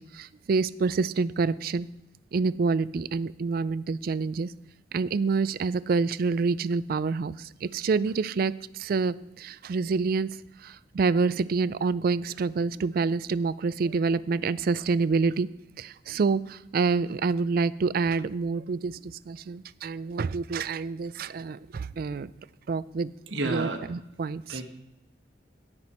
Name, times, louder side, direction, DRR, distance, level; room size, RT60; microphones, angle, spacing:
voice 1, 0.0-1.9 2.3-4.5 4.9-10.3 10.6-15.5 15.8-22.3 22.7-23.1 23.4-24.6, right 4 dB, 50° right, 18 dB, 0.3 m, -27 dB
voice 2, 23.3-23.8 24.5-24.7, right 2 dB, 75° right, 4 dB, 1.3 m, -30 dB
17.5 x 6.0 x 4.3 m, 0.87 s
head